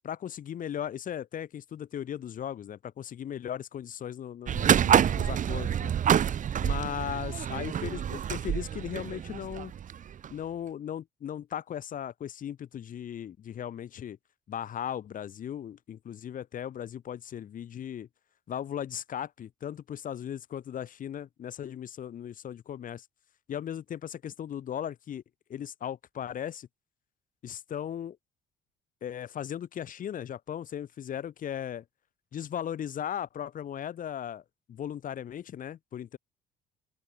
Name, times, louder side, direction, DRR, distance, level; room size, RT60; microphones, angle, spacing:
voice 1, 0.0-5.9 6.6-9.7 10.3-14.2 14.5-18.1 18.5-23.1 23.5-25.2 25.5-26.7 27.4-28.2 29.0-31.8 32.3-36.2, left 9 dB, 55° left, 5.3 m, -37 dB
sound 1, 4.5-10.3, right 9 dB, 50° right, 3.2 m, -27 dB
open air
cardioid pair, 110°, 17 cm